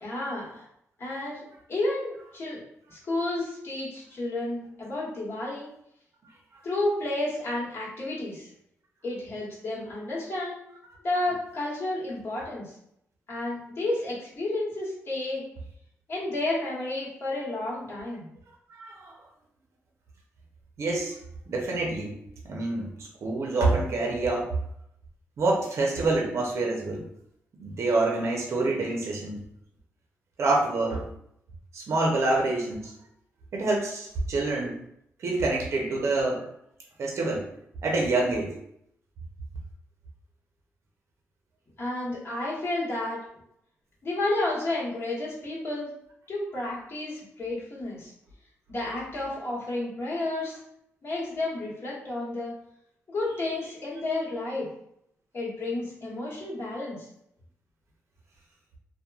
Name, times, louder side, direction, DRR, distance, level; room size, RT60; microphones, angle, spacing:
voice 1, 0.0-0.6 1.0-1.4 1.7-2.6 2.9-5.7 6.6-8.5 9.0-10.6 11.0-12.7 13.3-15.4 16.1-18.3 41.8-43.2 44.0-45.9 46.3-48.1 48.7-50.6 51.0-52.5 53.1-54.7 55.3-57.1, left 2 dB, 50° left, -6 dB, 1.1 m, -31 dB
voice 2, 18.7-19.1 20.8-21.2 21.5-22.2 22.4-22.9 23.2-24.5 25.4-27.0 27.6-29.4 30.4-31.0 31.7-32.9 33.5-34.8 35.2-36.5 37.0-37.5 37.8-38.5, right 2 dB, 65° right, -1 dB, 0.5 m, -26 dB
2.9 x 2.1 x 2.3 m, 0.74 s
cardioid pair, 95°, 5 cm